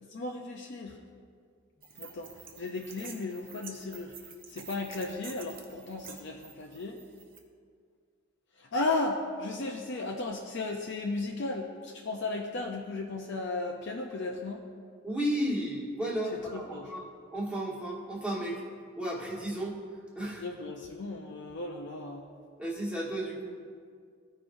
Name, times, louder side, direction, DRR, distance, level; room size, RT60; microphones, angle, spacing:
voice 1, 0.0-1.0 2.0-7.0 8.5-14.7 16.5-16.9 20.4-22.2, left 2 dB, 60° left, 0 dB, 0.5 m, -35 dB
sound 1, 1.8-7.4, right 6 dB, 45° right, 0.8 m, -49 dB
voice 2, 15.0-17.0 17.3-18.6 19.0-19.8 20.1-20.4 22.6-23.5, right 1 dB, 5° right, -5 dB, 1.4 m, -33 dB
15.0 x 5.0 x 2.6 m, 2.1 s
head